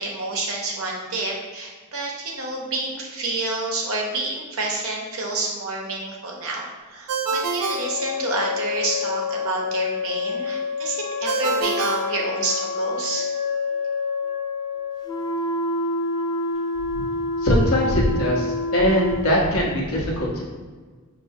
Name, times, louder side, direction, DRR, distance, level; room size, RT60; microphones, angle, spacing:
voice 1, 0.0-13.3, right 2 dB, 65° right, -1 dB, 0.8 m, -28 dB
Ringtone, 7.1-8.8 11.3-12.9, right 4 dB, 90° right, 0.3 m, -28 dB
Wind instrument woodwind instrument, 7.6-15.4, left 6 dB, 85° left, 1.2 m, -28 dB
sound 1, 15.1-19.3, equal, 20° left, 0.3 m, -27 dB
voice 2, 17.4-20.4, equal, 70° left, -3 dB, 1.0 m, -21 dB
5.4 x 2.6 x 2.7 m, 1.4 s
head